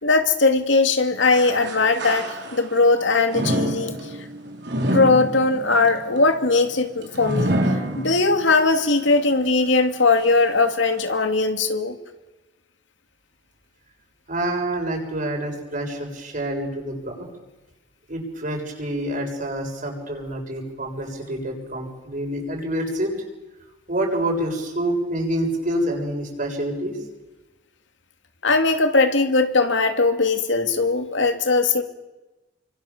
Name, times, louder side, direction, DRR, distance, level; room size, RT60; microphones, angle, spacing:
voice 1, 0.0-4.0 4.9-7.6 8.0-11.9 28.4-31.8, left 3 dB, 80° left, 6 dB, 2.6 m, -19 dB
sound 1, 1.2-2.8 3.3-8.6 9.0-9.1 10.0-10.1, right 1 dB, 65° right, 4.2 m, -27 dB
voice 2, 14.3-17.3 18.1-23.2 23.9-27.0, right 1 dB, 45° right, 1 dB, 7.1 m, -27 dB
29.5 x 25.0 x 7.3 m, 1.1 s
head